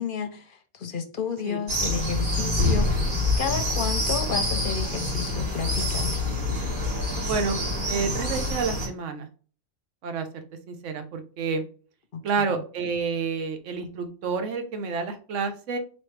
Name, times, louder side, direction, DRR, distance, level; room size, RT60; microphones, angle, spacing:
voice 1, 0.0-6.2 12.1-12.6, left 6 dB, 55° left, 7 dB, 0.7 m, -32 dB
sound 1, 1.7-8.9, left 2 dB, 45° right, 1.4 m, -26 dB
voice 2, 7.9-9.3 10.0-11.6 12.2-15.8, right 5 dB, 85° right, 7 dB, 1.1 m, -29 dB
4.4 x 3.1 x 3.2 m, 0.40 s
omnidirectional pair, 1.2 m